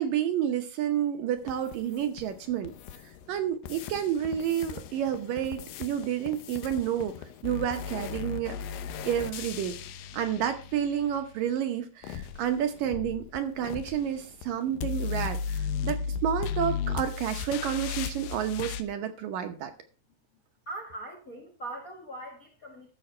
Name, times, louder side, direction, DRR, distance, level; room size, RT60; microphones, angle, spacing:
voice 1, 0.0-2.7 3.0-7.2 7.4-8.6 9.1-9.8 10.1-19.7, right 9 dB, 70° right, 6 dB, 2.3 m, -30 dB
sound 1, 1.5-3.4 3.6-11.3 12.0-18.8, left 6 dB, 90° left, 3.0 m, -36 dB
voice 2, 20.6-22.9, right 2 dB, 40° left, 3 dB, 1.2 m, -41 dB
13.5 x 6.9 x 4.4 m, 0.36 s
omnidirectional pair, 4.6 m